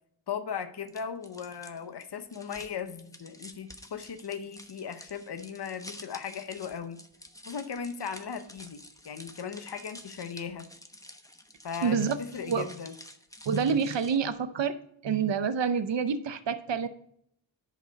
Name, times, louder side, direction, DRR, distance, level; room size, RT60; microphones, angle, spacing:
voice 1, 0.3-7.0 7.5-10.7 11.6-12.9, left 7 dB, 55° left, 8 dB, 0.9 m, -37 dB
sound 1, 0.9-14.3, left 1 dB, 5° left, 0.9 m, -50 dB
voice 2, 11.8-12.2 12.4-12.7 13.5-14.8 15.0-16.9, right 6 dB, 65° right, 11 dB, 0.8 m, -27 dB
10.5 x 5.5 x 5.2 m, 0.70 s
wide cardioid pair, 70°, 47 cm